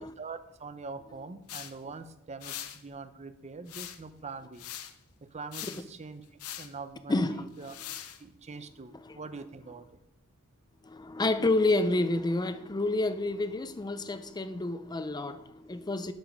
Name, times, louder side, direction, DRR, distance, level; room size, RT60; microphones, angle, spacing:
voice 1, 0.2-4.7 5.2-6.2 6.6-7.7 8.2-9.9, right 4 dB, 30° right, 0.6 m, -43 dB
sound 1, 1.5-1.7 2.4-2.8 3.7-4.1 4.6-4.9 5.5-5.8 6.4-6.7 7.6-8.2, left 11 dB, 75° left, 0.7 m, -41 dB
voice 2, 7.1-7.5 9.0-9.2 10.8-16.1, left 2 dB, 20° left, 0.5 m, -29 dB
12.0 x 5.0 x 5.2 m
head